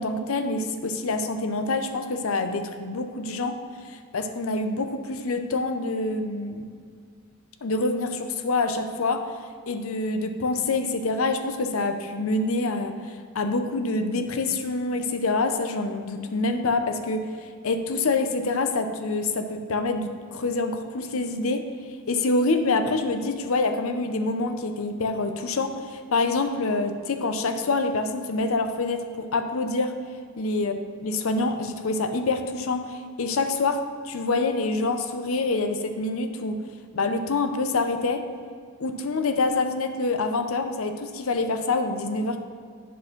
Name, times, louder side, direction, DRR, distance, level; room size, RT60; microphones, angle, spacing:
voice 1, 0.0-3.6 3.9-6.6 7.6-9.2 9.7-12.9 13.3-17.3 17.6-21.6 22.1-29.9 30.4-30.7 31.0-33.8 34.0-36.6 36.9-38.2 38.8-42.4, left 3 dB, 70° left, 7 dB, 0.6 m, -26 dB
8.2 x 4.4 x 5.9 m, 2.1 s
head